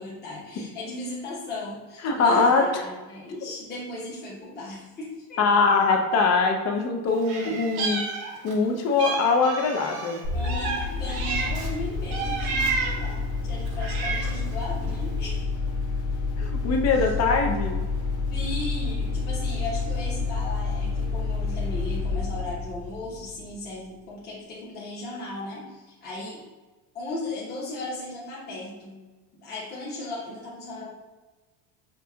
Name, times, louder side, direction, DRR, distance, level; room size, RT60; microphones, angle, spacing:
voice 1, 0.0-5.4 10.3-15.5 18.3-26.4 26.9-29.0 29.3-30.9, left 2 dB, 20° left, -7 dB, 0.9 m, -36 dB
voice 2, 2.0-2.8 5.4-8.0 8.4-10.2 16.4-17.8, left 4 dB, 35° left, 3 dB, 0.5 m, -22 dB
Meow, 7.2-8.6 9.0-11.7 12.1-13.1 13.7-14.5, right 4 dB, 55° right, 0.8 m, -31 dB
sound 1, 10.2-23.7, left 4 dB, 85° left, 1.1 m, -29 dB
5.3 x 2.6 x 2.2 m, 1.3 s
cardioid pair, 125°, 45 cm